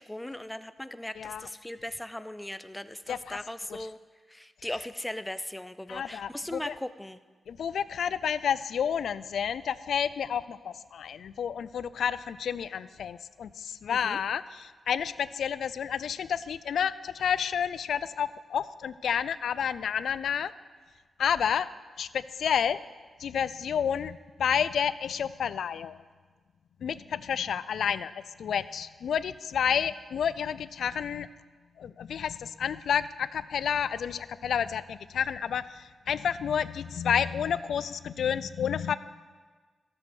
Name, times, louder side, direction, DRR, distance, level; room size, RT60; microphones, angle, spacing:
voice 1, 0.0-4.0 4.3-7.2 13.9-14.2, left 1 dB, 5° left, 12 dB, 0.4 m, -38 dB
voice 2, 1.2-1.5 3.1-3.4 3.7-3.8 5.9-6.7 7.5-20.5 21.2-21.7 22.0-22.8 23.2-26.0 26.8-31.3 31.8-39.0, left 8 dB, 80° left, 16 dB, 0.4 m, -30 dB
13.5 x 7.2 x 6.1 m, 1.4 s
wide cardioid pair, 120°, 0 cm